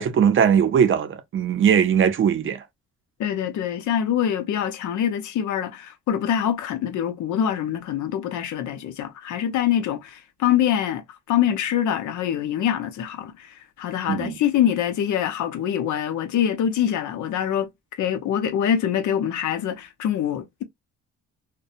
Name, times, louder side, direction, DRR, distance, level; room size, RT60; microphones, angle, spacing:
voice 1, 0.0-2.6 14.1-14.4, right 8 dB, 45° right, 0.5 m, -20 dB
voice 2, 3.2-17.7 18.0-20.6, left 9 dB, 75° left, 0.7 m, -24 dB
2.6 x 2.1 x 2.4 m
cardioid pair, 90°, 30 cm